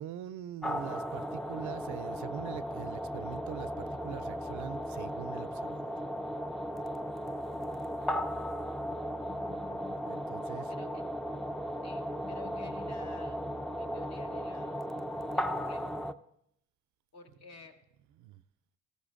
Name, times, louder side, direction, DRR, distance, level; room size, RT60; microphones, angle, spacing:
voice 1, 0.0-5.9 10.1-10.7 18.2-18.4, right 11 dB, 75° right, 0.4 m, -43 dB
sound 1, 0.6-16.1, equal, ahead, 0.3 m, -36 dB
voice 2, 7.5-8.2 10.7-11.0 11.8-13.4 13.8-14.9 15.3-15.9 17.1-17.8, left 4 dB, 55° left, 1.4 m, -53 dB
15.0 x 13.5 x 2.5 m
cardioid pair, 90°, 30 cm